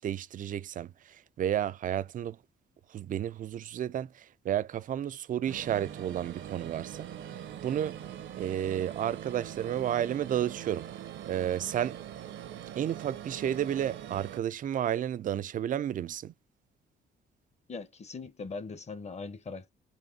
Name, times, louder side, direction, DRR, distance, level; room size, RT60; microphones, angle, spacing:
voice 1, 0.0-2.4 2.9-7.3 7.6-8.0 8.4-10.9 11.2-12.0 12.8-16.3, right 10 dB, 45° right, 0.4 m, -32 dB
sound 1, 5.5-14.4, right 10 dB, 70° right, 0.8 m, -42 dB
voice 2, 17.7-19.7, left 4 dB, 35° left, 0.9 m, -40 dB
4.2 x 3.0 x 2.8 m
cardioid pair, 90°, 20 cm